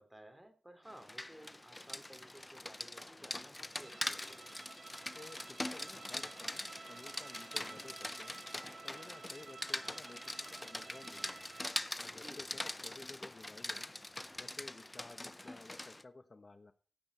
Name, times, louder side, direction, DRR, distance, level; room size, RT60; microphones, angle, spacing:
voice 1, 0.0-4.5 12.1-12.4, right 1 dB, 10° right, 6 dB, 3.7 m, -56 dB
Rain, 0.9-16.0, left 1 dB, 20° left, 0.6 m, -43 dB
Bowed string instrument, 3.6-12.0, right 5 dB, 90° right, 0.7 m, -54 dB
voice 2, 5.1-8.4 8.8-11.5 12.0-14.0 14.3-16.7, left 3 dB, 45° left, 9 dB, 1.2 m, -54 dB
15.5 x 8.6 x 4.4 m, 0.41 s
wide cardioid pair, 70°, 0 cm